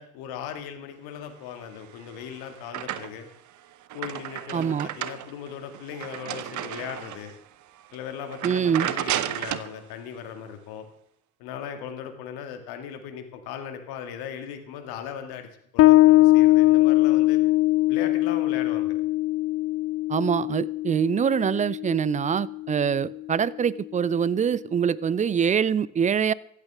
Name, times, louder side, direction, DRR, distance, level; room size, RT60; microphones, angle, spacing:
voice 1, 0.0-3.3 3.9-7.3 7.9-10.9 11.4-17.4 17.9-19.0, left 8 dB, 60° left, 7 dB, 2.1 m, -38 dB
sound 1, 1.8-3.4 3.7-7.4 7.8-8.0 8.3-9.7, right 12 dB, 45° right, 0.9 m, -33 dB
voice 2, 4.5-4.9 8.4-8.9 20.1-26.3, right 7 dB, 20° right, 21 dB, 0.4 m, -24 dB
Bass guitar, 15.8-22.9, left 18 dB, 35° left, 0.5 m, -21 dB
24.0 x 8.2 x 3.6 m, 0.76 s
figure-of-eight pair, 60°, 41 cm